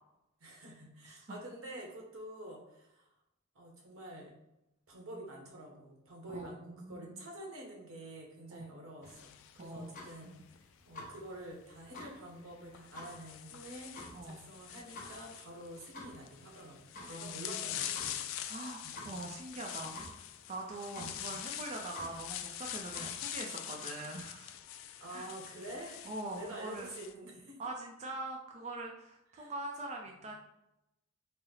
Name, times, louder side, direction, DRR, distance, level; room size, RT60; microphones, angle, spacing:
voice 1, 0.4-3.1 3.5-4.3 4.9-14.0 14.2-16.8 17.1-18.3 18.8-19.1 21.0-21.3 25.0-27.6 29.3-29.5 30.1-30.2, right 1 dB, 85° right, -1 dB, 1.1 m, -48 dB
voice 2, 1.1-1.4 6.3-7.3 8.5-8.6 9.6-9.9 14.1-14.5 17.0-17.8 18.5-20.0 20.5-24.5 25.1-25.3 26.0-26.9 27.6-30.3, right 2 dB, 35° right, 0 dB, 0.4 m, -43 dB
sound 1, 9.0-23.3, left 1 dB, 40° left, 0.8 m, -52 dB
sound 2, 9.1-10.6 11.8-12.0 12.7-27.1, left 11 dB, 70° left, 0.3 m, -44 dB
4.2 x 2.0 x 3.8 m, 0.87 s
head